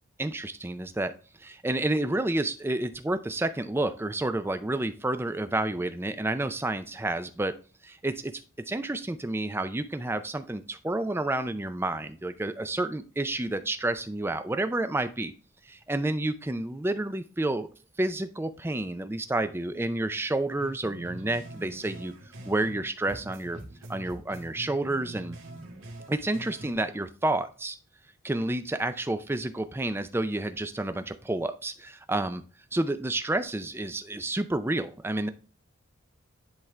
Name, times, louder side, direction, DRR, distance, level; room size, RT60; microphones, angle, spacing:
voice 1, 0.2-1.1 1.4-7.5 7.8-8.4 8.7-15.3 15.7-17.7 18.0-22.1 22.5-23.6 23.9-25.4 26.1-27.8 28.2-32.4 32.7-35.3, right 2 dB, 10° right, 10 dB, 0.4 m, -30 dB
sound 1, 20.6-22.8 23.1-26.8, right 1 dB, 80° right, 1.8 m, -44 dB
10.5 x 3.7 x 3.2 m, 0.37 s
head